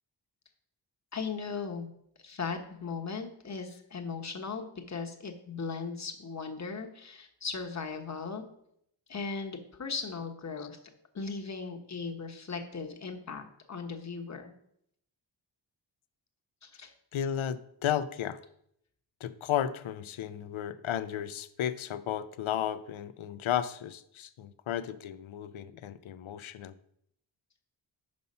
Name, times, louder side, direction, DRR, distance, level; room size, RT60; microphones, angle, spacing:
voice 1, 1.1-1.9 2.2-8.4 9.1-10.8 11.1-14.5 16.6-16.9, left 5 dB, 35° left, 4 dB, 1.0 m, -38 dB
voice 2, 17.1-18.4 19.2-26.7, left 10 dB, 80° left, 14 dB, 0.6 m, -33 dB
5.5 x 5.3 x 5.4 m, 0.72 s
wide cardioid pair, 75°, 48 cm